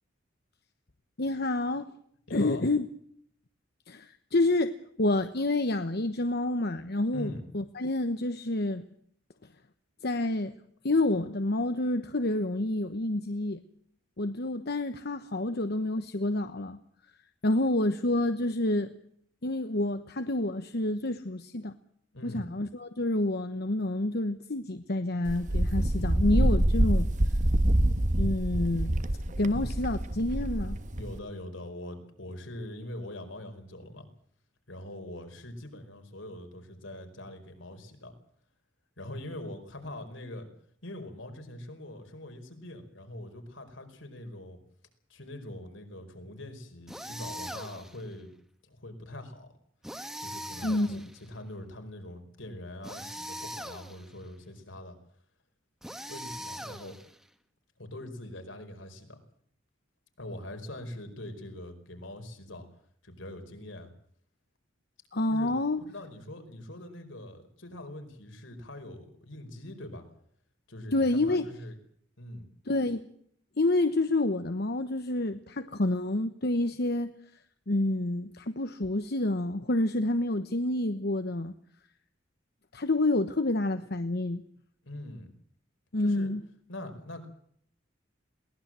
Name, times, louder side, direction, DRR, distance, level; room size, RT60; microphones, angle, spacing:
voice 1, 1.2-1.9 2.3-2.9 3.9-8.8 10.0-10.5 10.8-13.6 14.2-16.8 17.4-18.9 19.4-21.7 22.2-27.1 28.2-28.9 29.4-30.8 50.6-51.1 65.1-65.8 70.9-71.5 72.7-73.1 73.6-77.2 77.7-81.5 82.7-84.4 85.9-86.4, left 2 dB, 55° left, 9 dB, 1.1 m, -28 dB
voice 2, 2.3-2.6 7.1-7.4 22.1-22.5 29.4-29.7 30.9-34.1 34.7-38.1 39.0-40.5 40.8-44.6 45.1-48.3 48.6-49.5 50.2-55.0 56.1-56.9 57.8-59.2 60.2-62.7 63.0-63.9 65.3-70.2 70.7-71.8 72.2-72.4 84.8-85.3 86.0-86.3 86.7-87.2, left 1 dB, 75° left, 6 dB, 4.9 m, -43 dB
Wind, 25.3-31.2, right 1 dB, 40° right, 1.3 m, -26 dB
sound 1, 46.9-48.0 49.8-51.3 52.8-54.1 55.8-57.2, equal, 5° right, 1.8 m, -41 dB
22.0 x 19.0 x 7.6 m, 0.65 s
head